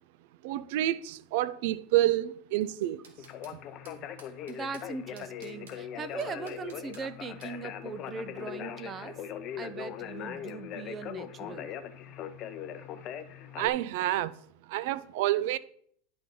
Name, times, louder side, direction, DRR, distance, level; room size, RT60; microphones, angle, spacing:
voice 1, 0.4-3.0 13.6-14.3 14.7-15.6, right 14 dB, 65° right, 0.4 m, -28 dB
sound 1, 2.6-3.6 3.9-4.9 5.2-5.8 6.2-7.1 7.4-7.6, right 4 dB, 90° right, 1.5 m, -54 dB
Conversation, 3.2-13.7, left 9 dB, 45° left, 0.6 m, -40 dB
voice 2, 4.5-9.2 9.6-11.7, right 5 dB, 30° right, 0.6 m, -40 dB
10.5 x 4.3 x 3.7 m
supercardioid pair, 115°, 0 cm